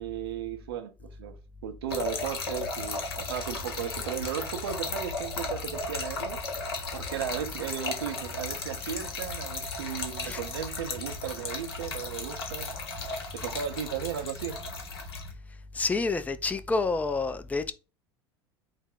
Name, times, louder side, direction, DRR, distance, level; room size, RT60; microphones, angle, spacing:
voice 1, 0.0-6.4 6.9-14.6, right 9 dB, 75° right, 0.6 m, -36 dB
Trickle dribble / Fill (with liquid), 1.9-15.3, left 3 dB, 80° left, 1.1 m, -35 dB
voice 2, 15.7-17.7, left 3 dB, 10° left, 0.4 m, -28 dB
4.8 x 2.1 x 3.7 m
hypercardioid pair, 75°, 13 cm